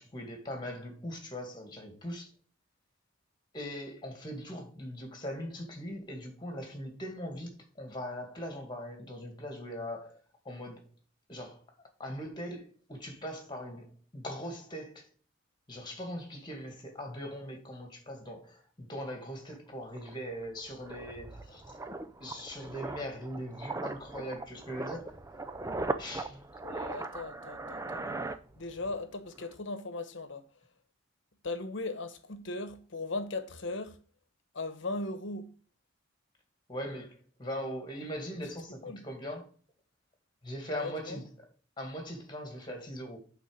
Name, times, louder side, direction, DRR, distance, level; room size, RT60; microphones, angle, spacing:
voice 1, 0.0-2.3 3.5-10.8 11.3-11.6 12.0-15.1 15.7-21.7 22.2-25.1 26.0-26.4 36.7-39.5 40.4-41.5 41.8-43.2, equal, 20° left, 2.1 m, -40 dB
sound 1, 19.6-19.7 19.9-29.0 29.3-29.5, right 2 dB, 15° right, 0.5 m, -39 dB
voice 2, 26.6-28.0 28.6-30.4 31.4-34.0 34.5-35.5 38.8-39.0 40.8-41.2, left 2 dB, 65° left, 1.1 m, -38 dB
8.7 x 4.0 x 6.3 m
head